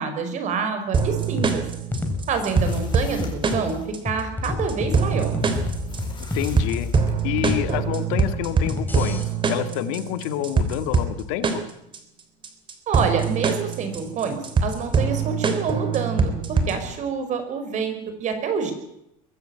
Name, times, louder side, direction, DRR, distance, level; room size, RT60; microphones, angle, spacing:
voice 1, 0.0-1.6 2.3-3.8 4.0-5.3 12.9-18.7, right 5 dB, 45° right, 8 dB, 5.3 m, -27 dB
sound 1, 0.9-16.9, right 5 dB, 30° right, 3.3 m, -24 dB
sound 2, 1.4-9.2, left 2 dB, 10° left, 4.2 m, -30 dB
sound 3, 2.2-3.9 5.4-7.2, left 5 dB, 25° left, 5.2 m, -43 dB
voice 2, 6.2-6.9 7.2-11.6, left 12 dB, 75° left, 10 dB, 2.0 m, -28 dB
22.5 x 14.0 x 9.0 m, 0.81 s
supercardioid pair, 125°, 18 cm